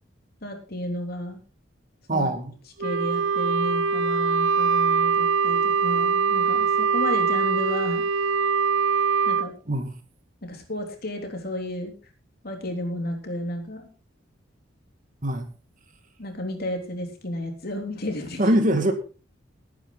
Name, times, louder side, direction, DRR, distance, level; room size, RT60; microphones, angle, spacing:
voice 1, 0.4-1.4 2.1-2.3 2.8-8.0 9.3-9.5 10.4-11.9 12.4-13.9 16.2-18.4, left 1 dB, 50° left, 3 dB, 3.5 m, -32 dB
voice 2, 2.1-2.5 9.7-9.9 15.2-15.5 18.4-18.9, right 1 dB, 40° right, 6 dB, 2.1 m, -22 dB
Wind instrument woodwind instrument, 2.8-9.5, right 5 dB, 80° right, 0.9 m, -22 dB
18.5 x 9.4 x 4.0 m, 0.35 s
head